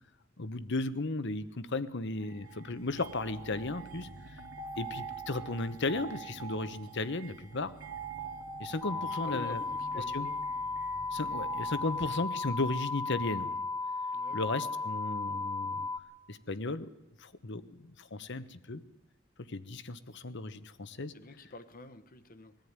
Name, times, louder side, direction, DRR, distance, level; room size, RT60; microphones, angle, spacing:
voice 1, 0.4-4.1 4.8-7.7 8.6-9.6 9.9-10.3 11.1-13.6 14.3-15.9 16.3-16.9 17.2-18.8 19.5-21.1, left 2 dB, 60° left, 1.1 m, -35 dB
sound 1, 2.2-12.1, right 5 dB, 85° right, 2.5 m, -45 dB
sound 2, 8.8-16.0, left 3 dB, 5° left, 1.4 m, -35 dB
voice 2, 9.2-10.3 14.1-14.4 21.1-22.6, left 2 dB, 45° left, 1.3 m, -47 dB
21.0 x 14.0 x 9.7 m
head